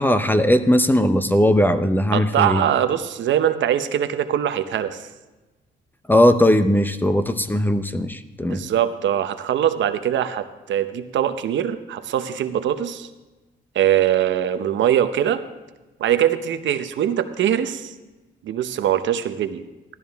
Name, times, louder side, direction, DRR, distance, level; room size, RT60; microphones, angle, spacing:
voice 1, 0.0-2.6 6.1-8.6, left 1 dB, 10° left, 10 dB, 0.7 m, -18 dB
voice 2, 2.1-5.1 8.5-13.1 13.7-15.4 16.0-17.9 18.4-19.6, right 10 dB, 70° right, 10 dB, 0.8 m, -22 dB
14.5 x 12.5 x 3.5 m, 1.1 s
cardioid pair, 90°, 20 cm